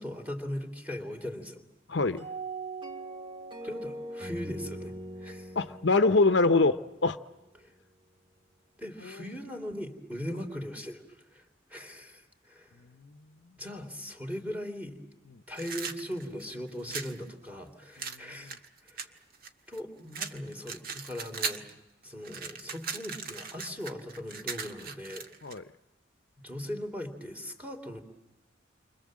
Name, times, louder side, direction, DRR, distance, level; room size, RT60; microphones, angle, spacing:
voice 1, 0.0-1.6 3.6-5.6 7.6-7.7 8.8-11.0 11.3-12.8 13.6-15.0 15.5-19.1 19.7-21.7 22.0-25.3 26.4-28.0, equal, 10° right, 4 dB, 3.1 m, -39 dB
voice 2, 1.9-2.3 5.6-7.2 9.0-9.2 13.0-13.1 18.0-18.6 25.4-25.6, left 3 dB, 60° left, 10 dB, 0.9 m, -25 dB
sound 1, 2.2-7.3, right 2 dB, 25° right, 2.4 m, -41 dB
sound 2, 15.5-17.2 18.0-19.8 20.1-21.7 22.0-25.6, right 5 dB, 50° right, 1.7 m, -38 dB
29.5 x 25.0 x 7.6 m, 1.0 s
head